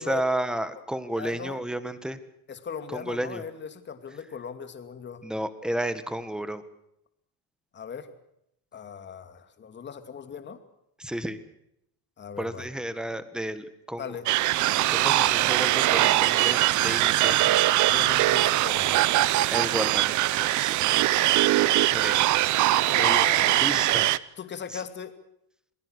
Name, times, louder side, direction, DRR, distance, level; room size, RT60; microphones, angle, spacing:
voice 1, 0.0-2.2 2.9-3.4 5.2-6.6 11.0-11.4 12.4-14.0 14.8-17.7 19.5-21.0 21.9-22.2 23.0-24.1 24.7-24.8, right 1 dB, ahead, 12 dB, 1.6 m, -32 dB
voice 2, 1.1-1.6 2.5-5.2 7.7-8.1 8.7-10.6 12.2-12.7 14.0-14.3 17.8-19.4 22.8-23.7 24.4-25.1, left 7 dB, 30° left, 8 dB, 2.6 m, -38 dB
sound 1, 14.3-24.2, right 16 dB, 50° right, 0.8 m, -22 dB
28.0 x 20.0 x 6.5 m, 0.78 s
cardioid pair, 145°, 39 cm